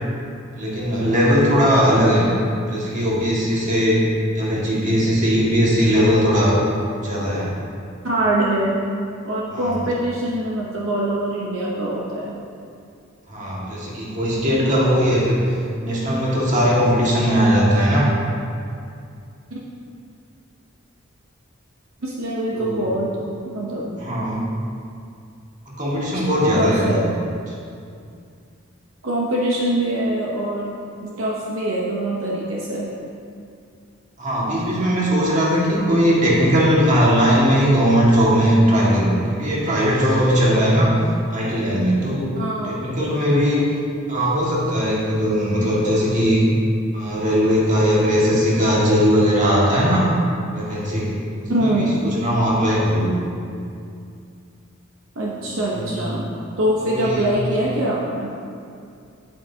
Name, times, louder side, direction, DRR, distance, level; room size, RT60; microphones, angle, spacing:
voice 1, 0.5-2.3 2.7-4.0 4.3-6.6 6.9-7.5 9.5-9.7 13.3-15.4 15.8-18.1 22.5-23.0 24.0-24.5 25.8-27.0 34.2-40.9 41.3-42.3 42.6-43.6 44.1-46.4 46.9-50.0 50.5-51.1 51.4-53.1 55.4-55.9 56.8-57.3, equal, 40° right, -6 dB, 1.9 m, -19 dB
voice 2, 8.0-8.8 9.2-12.3 19.5-19.6 22.0-23.1 23.5-23.9 26.5-27.0 29.0-30.8 31.0-32.9 42.3-42.8 51.5-52.0 55.2-56.3 56.6-58.3, right 1 dB, 75° right, -4 dB, 0.9 m, -23 dB
9.1 x 8.5 x 2.8 m, 2.4 s
head